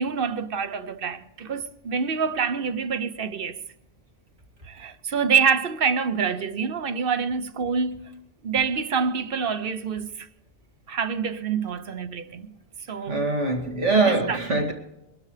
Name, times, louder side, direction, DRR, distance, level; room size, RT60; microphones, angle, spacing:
voice 1, 0.0-3.6 4.7-8.0 8.4-10.3 10.9-12.5 12.9-13.2 14.1-14.4, right 6 dB, 55° right, 0.9 m, -26 dB
voice 2, 13.1-14.7, right 3 dB, 90° right, 2.7 m, -23 dB
23.5 x 12.0 x 3.3 m
omnidirectional pair, 1.2 m